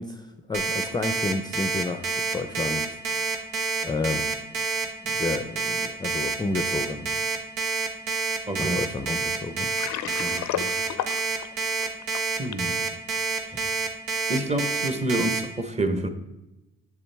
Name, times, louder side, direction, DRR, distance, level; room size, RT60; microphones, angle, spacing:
voice 1, 0.0-3.4 3.8-4.3 5.0-7.1 8.6-9.7, left 3 dB, 15° left, 7 dB, 0.5 m, -31 dB
Alarm, 0.5-15.4, right 4 dB, 90° right, 1.1 m, -27 dB
voice 2, 8.5-8.8 10.0-10.7 12.4-12.8 13.5-13.6 14.3-16.1, right 1 dB, 20° right, 7 dB, 1.0 m, -28 dB
Water, 9.6-12.7, left 12 dB, 70° left, 0.5 m, -33 dB
7.7 x 7.1 x 3.4 m, 0.97 s
cardioid pair, 90°, 30 cm